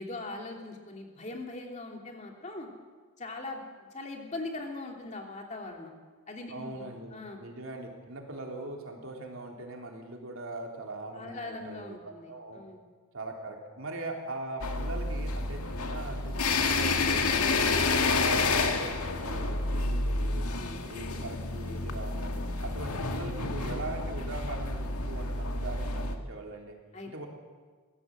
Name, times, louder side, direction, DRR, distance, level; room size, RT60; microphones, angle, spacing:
voice 1, 0.0-2.7 3.2-5.9 6.3-7.4 11.1-12.8 17.5-17.8 20.5-20.8 26.9-27.1, left 2 dB, 30° left, 1 dB, 2.9 m, -41 dB
voice 2, 6.5-12.6 13.1-17.3 17.8-20.5 20.8-26.7 27.0-27.3, right 2 dB, 65° right, 1 dB, 3.5 m, -41 dB
sound 1, 14.6-26.1, left 3 dB, 90° left, 2.0 m, -29 dB
22.5 x 16.5 x 7.8 m, 1.5 s
head